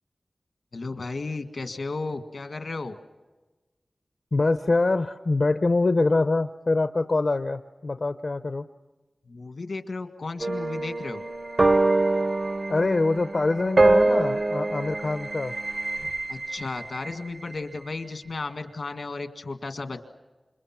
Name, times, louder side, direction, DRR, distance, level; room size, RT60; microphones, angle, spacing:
voice 1, 0.7-3.0 9.3-11.2 16.3-20.0, left 3 dB, 80° left, 7 dB, 1.8 m, -34 dB
voice 2, 4.3-8.6 12.7-15.5, left 3 dB, 60° left, 9 dB, 0.7 m, -24 dB
sound 1, 10.4-17.1, right 2 dB, 55° right, 0.9 m, -24 dB
29.0 x 27.0 x 6.0 m, 1.2 s
wide cardioid pair, 85°, 0 cm